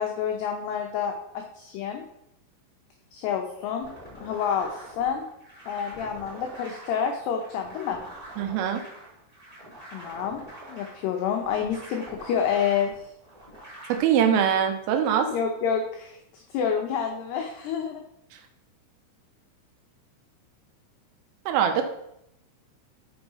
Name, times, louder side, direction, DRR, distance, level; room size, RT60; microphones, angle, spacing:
voice 1, 0.0-2.1 3.1-3.9 4.2-5.2 5.7-8.0 9.9-10.4 10.7-12.9 15.3-18.0, left 7 dB, 85° left, 2 dB, 2.3 m, -28 dB
sound 1, 3.8-14.0, right 1 dB, 10° right, 2.4 m, -45 dB
voice 2, 8.4-8.8 13.9-15.3 21.5-21.8, right 8 dB, 85° right, 7 dB, 3.4 m, -22 dB
6.6 x 6.1 x 5.5 m, 0.78 s
omnidirectional pair, 5.8 m